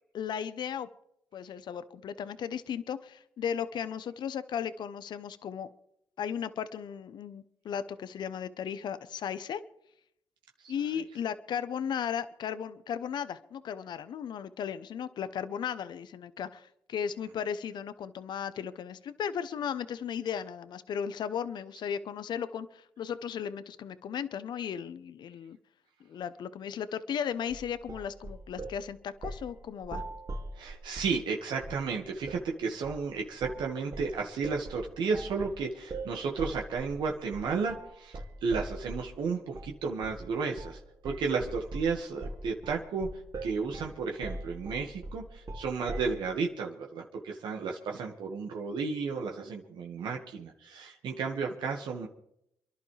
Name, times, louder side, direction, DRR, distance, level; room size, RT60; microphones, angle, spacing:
voice 1, 0.1-0.9 1.3-5.7 6.2-9.6 10.7-25.6 26.0-30.0, left 8 dB, 70° left, 13 dB, 0.8 m, -36 dB
sound 1, 27.5-28.8 29.2-29.5 29.8-31.2 31.6-31.9 32.2-32.5 32.8-33.1 33.4-33.7 33.9-39.1 39.5-39.7 40.0-40.3 40.6-40.8 41.0-46.2, right 2 dB, 50° right, 2.7 m, -41 dB
voice 2, 30.6-43.1 43.4-52.1, right 5 dB, 80° right, 1 dB, 1.7 m, -33 dB
28.5 x 11.0 x 3.4 m, 0.76 s
cardioid pair, 65°, 8 cm